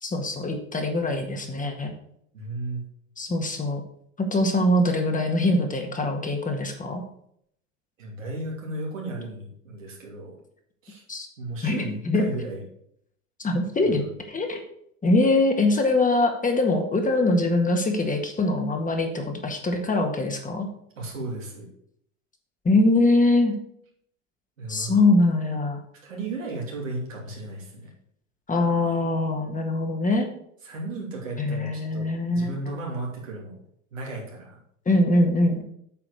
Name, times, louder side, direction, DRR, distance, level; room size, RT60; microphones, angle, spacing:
voice 1, 0.0-1.9 3.2-3.8 4.2-7.0 11.1-11.3 11.6-12.3 13.4-14.6 15.0-20.7 22.7-23.6 24.7-25.8 28.5-30.3 31.4-32.6 34.9-35.6, left 2 dB, 20° left, 4 dB, 1.8 m, -23 dB
voice 2, 2.3-2.8 8.0-10.4 10.8-11.0 11.4-12.6 21.0-21.7 24.6-25.0 26.0-27.9 30.6-33.6 33.9-34.5, right 2 dB, 85° right, -2 dB, 2.9 m, -35 dB
8.6 x 4.9 x 6.3 m, 0.70 s
hypercardioid pair, 80°, 38 cm